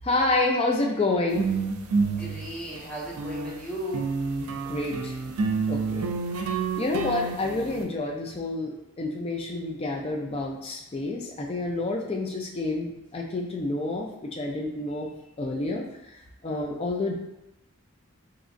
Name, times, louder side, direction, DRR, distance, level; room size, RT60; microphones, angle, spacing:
voice 1, 0.0-1.5 4.7-5.1 5.7-6.1 6.8-15.1 15.4-15.9 16.4-17.1, left 2 dB, 25° left, 0 dB, 0.3 m, -28 dB
sound 1, 1.3-3.6 3.9-7.8, right 4 dB, 80° right, 0.4 m, -29 dB
voice 2, 2.0-4.1, equal, 5° left, -8 dB, 0.9 m, -36 dB
3.6 x 2.9 x 2.5 m, 0.90 s
head